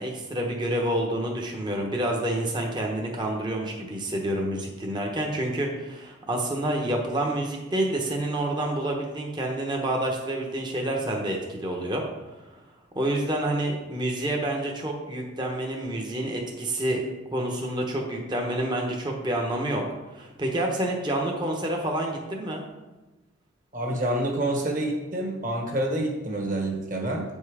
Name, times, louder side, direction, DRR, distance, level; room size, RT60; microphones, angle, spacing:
voice 1, 0.0-12.0 12.9-17.0 17.3-19.8 20.1-22.6, right 1 dB, 20° right, 0 dB, 0.9 m, -28 dB
voice 2, 23.7-27.2, right 1 dB, 40° right, 1 dB, 1.5 m, -27 dB
8.7 x 5.4 x 4.8 m, 1.1 s
head